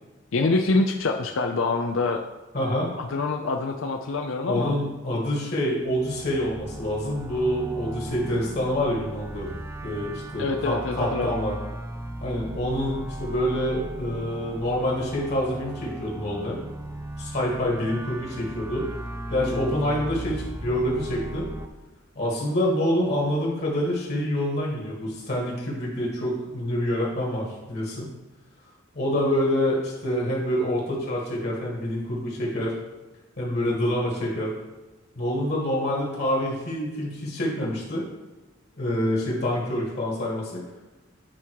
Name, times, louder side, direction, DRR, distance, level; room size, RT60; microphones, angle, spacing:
voice 1, 0.3-2.2 3.0-4.8 10.4-11.3, left 3 dB, 85° left, 4 dB, 0.5 m, -25 dB
voice 2, 2.5-2.9 4.5-9.6 9.8-11.5 12.2-16.6 17.2-18.9 19.3-21.5 22.2-28.1 28.9-32.7 33.4-34.5 35.2-38.0 38.8-40.6, left 1 dB, 55° left, -3 dB, 1.9 m, -26 dB
sound 1, 5.8-21.7, right 1 dB, 15° right, 0.4 m, -37 dB
8.6 x 3.6 x 4.7 m, 1.1 s
head